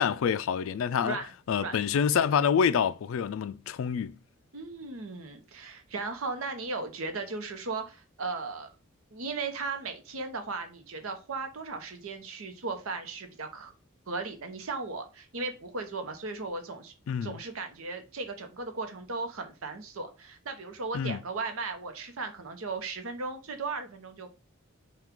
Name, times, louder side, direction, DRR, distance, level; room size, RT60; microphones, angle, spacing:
voice 1, 0.0-1.2 1.5-4.1 17.1-17.4 20.9-21.2, left 7 dB, 75° left, 0.3 m, -27 dB
voice 2, 4.5-8.7 9.1-13.7 14.1-16.9 17.2-24.3, right 3 dB, 85° right, 0.8 m, -36 dB
5.8 x 2.3 x 3.6 m
head